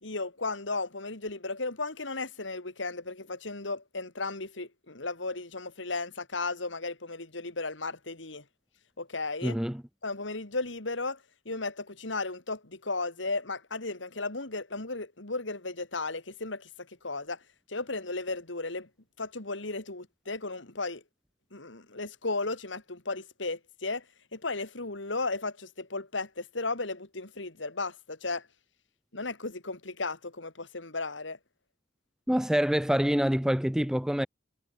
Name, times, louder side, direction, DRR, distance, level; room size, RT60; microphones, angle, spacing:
voice 1, 0.0-8.4 9.0-9.6 10.0-17.4 17.7-18.9 19.2-21.0 21.5-24.0 24.3-28.5 29.1-31.4, left 3 dB, 70° left, 3.0 m, -35 dB
voice 2, 9.4-9.8 32.3-34.3, equal, 5° right, 0.6 m, -26 dB
head